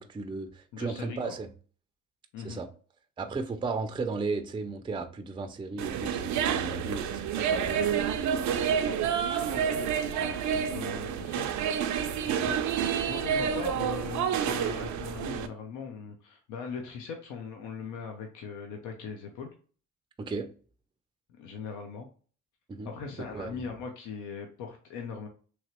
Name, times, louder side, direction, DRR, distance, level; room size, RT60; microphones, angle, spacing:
voice 1, 0.0-1.5 2.4-2.7 3.2-7.9 20.2-20.5 22.7-22.9 23.2-23.7, right 4 dB, 15° right, 0.4 m, -35 dB
voice 2, 0.7-1.4 2.3-2.6 9.5-11.9 12.3-19.5 21.4-22.1 22.9-25.3, left 5 dB, 85° left, 0.7 m, -40 dB
sound 1, 5.8-15.5, right 8 dB, 70° right, 0.5 m, -29 dB
3.1 x 2.9 x 2.9 m
cardioid pair, 90°, 30 cm